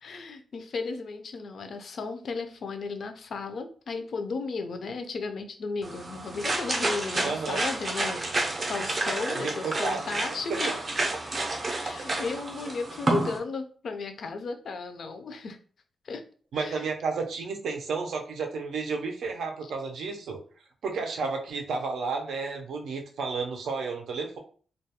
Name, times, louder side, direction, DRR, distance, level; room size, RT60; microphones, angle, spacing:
voice 1, 0.0-10.9 11.7-15.6 16.0-16.2 16.5-16.8 19.6-19.7, left 4 dB, 55° left, 7 dB, 0.3 m, -35 dB
sound 1, 5.8-13.4, right 2 dB, 30° right, 0.5 m, -30 dB
voice 2, 7.2-7.6 9.4-10.0 10.5-10.6 16.5-20.4 20.8-24.4, right 4 dB, 80° right, 3 dB, 0.5 m, -32 dB
2.3 x 2.2 x 2.7 m, 0.43 s
wide cardioid pair, 160°, 0 cm